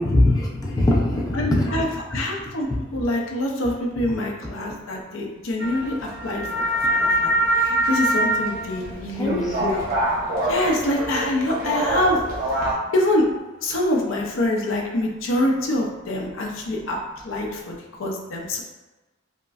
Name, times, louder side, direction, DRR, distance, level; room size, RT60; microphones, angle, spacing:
voice 1, 0.0-1.9 9.2-9.7, left 1 dB, 20° left, -3 dB, 0.5 m, -21 dB
voice 2, 1.3-6.6 7.0-9.9 10.4-12.2 12.9-13.3 13.6-17.0 17.2-18.6, left 1 dB, 80° left, 0 dB, 0.6 m, -25 dB
sound 1, 5.6-12.7, right 1 dB, 45° right, 0.8 m, -24 dB
5.0 x 2.1 x 2.3 m, 1.1 s
head